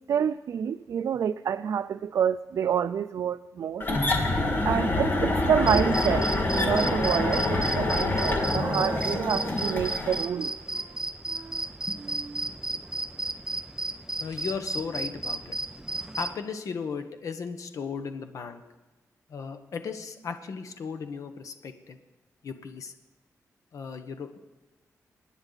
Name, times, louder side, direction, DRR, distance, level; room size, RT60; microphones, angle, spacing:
voice 1, 0.1-3.9 4.6-6.3 6.5-10.5, right 8 dB, 70° right, 12 dB, 0.4 m, -28 dB
sound 1, 3.8-10.2, left 2 dB, 35° left, 2.0 m, -26 dB
Wind instrument woodwind instrument, 3.9-7.8 8.1-11.7 11.9-12.5, right 6 dB, 50° right, 0.9 m, -41 dB
sound 2, 5.6-16.3, right 2 dB, 10° right, 0.5 m, -34 dB
voice 2, 14.2-15.6 16.2-18.6 19.3-22.0 22.4-22.9 23.7-24.4, left 5 dB, 70° left, 7 dB, 1.1 m, -36 dB
24.5 x 9.9 x 4.0 m, 1.1 s
wide cardioid pair, 145°, 6 cm